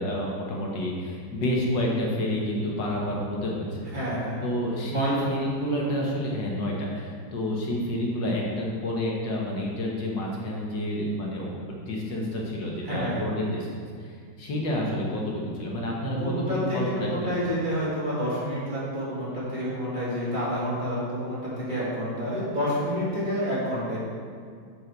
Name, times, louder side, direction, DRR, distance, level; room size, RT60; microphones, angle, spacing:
voice 1, 0.0-3.9 4.4-17.3, equal, 85° left, -2 dB, 1.9 m, -29 dB
voice 2, 3.9-4.4 4.9-5.3 12.8-13.3 16.2-21.4 21.7-24.0, equal, 25° right, -9 dB, 2.1 m, -29 dB
6.7 x 5.5 x 4.5 m, 2.1 s
omnidirectional pair, 1.9 m